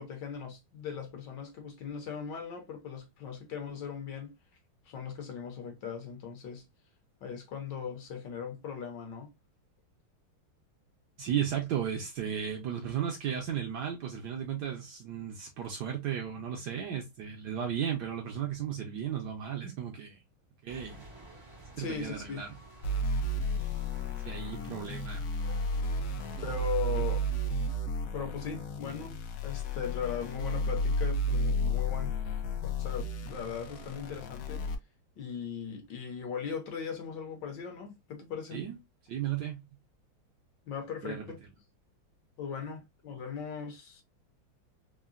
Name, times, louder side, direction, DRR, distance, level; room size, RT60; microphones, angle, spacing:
voice 1, 0.0-4.3 4.9-6.6 7.2-9.3 21.8-22.4 26.4-27.2 28.1-32.2 32.6-34.6 35.2-38.6 40.7-41.4 42.4-44.0, left 7 dB, 65° left, 1.3 m, -39 dB
voice 2, 11.2-20.2 20.6-21.0 21.8-22.5 23.1-23.2 24.2-25.2 26.3-26.4 26.9-27.0 38.5-38.8 39.1-39.6 41.0-41.3, right 9 dB, 70° right, 1.0 m, -35 dB
sound 1, 20.7-27.8, right 2 dB, 40° right, 0.4 m, -52 dB
sound 2, 22.8-34.7, equal, 85° left, 0.8 m, -32 dB
3.7 x 2.1 x 2.3 m
omnidirectional pair, 2.3 m